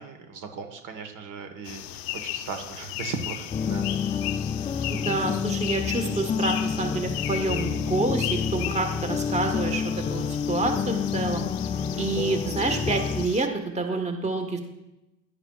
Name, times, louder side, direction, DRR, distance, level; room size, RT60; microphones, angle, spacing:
voice 1, 0.0-3.9 11.8-12.1, right 5 dB, 65° right, 6 dB, 1.4 m, -38 dB
sound 1, 1.6-13.5, left 14 dB, 80° left, 0.6 m, -36 dB
sound 2, 3.5-13.3, left 6 dB, 20° left, 0.3 m, -29 dB
voice 2, 4.9-11.5 12.0-14.6, right 2 dB, 20° right, 5 dB, 1.3 m, -28 dB
10.5 x 10.5 x 2.4 m, 0.93 s
supercardioid pair, 80°, 35 cm